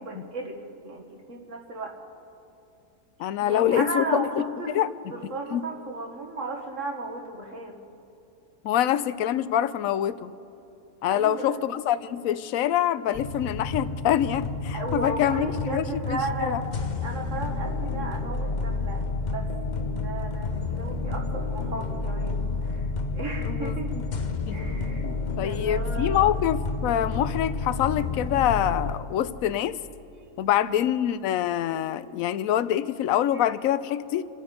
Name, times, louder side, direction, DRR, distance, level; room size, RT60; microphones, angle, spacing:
voice 1, 0.0-1.9 3.4-4.8 5.1-7.8 11.1-11.7 14.7-22.9 23.1-23.9 24.5-25.1 25.4-26.3 30.1-30.3 30.6-30.8 33.3-33.5, right 2 dB, 50° right, 2 dB, 1.7 m, -35 dB
voice 2, 3.2-4.4 4.7-4.9 5.2-5.6 8.6-10.3 11.0-16.6 23.4-24.0 24.5-24.7 25.0-29.8 30.4-34.2, left 11 dB, 65° left, 15 dB, 0.9 m, -25 dB
sound 1, 13.1-28.9, left 3 dB, 40° left, 0.6 m, -30 dB
28.5 x 9.5 x 5.2 m, 2.8 s
omnidirectional pair, 1.7 m